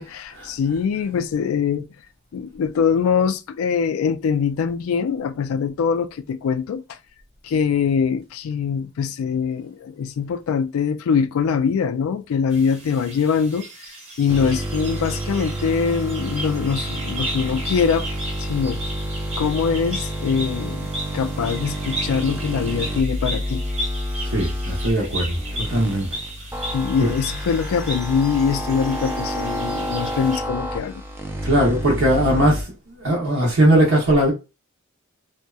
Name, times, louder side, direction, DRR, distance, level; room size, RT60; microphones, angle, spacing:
voice 1, 0.0-1.9 2.3-7.0 7.4-13.7 14.2-18.1 18.4-18.8 19.4-23.6 26.7-31.0, left 6 dB, 80° left, 0.3 m, -23 dB
sound 1, 12.5-30.4, right 1 dB, 30° right, 0.8 m, -35 dB
sound 2, 14.3-32.6, equal, 10° right, 0.3 m, -29 dB
voice 2, 24.3-26.1 27.0-27.1 31.4-32.7 33.0-34.3, right 1 dB, 65° right, 0.7 m, -19 dB
2.7 x 2.0 x 2.3 m
head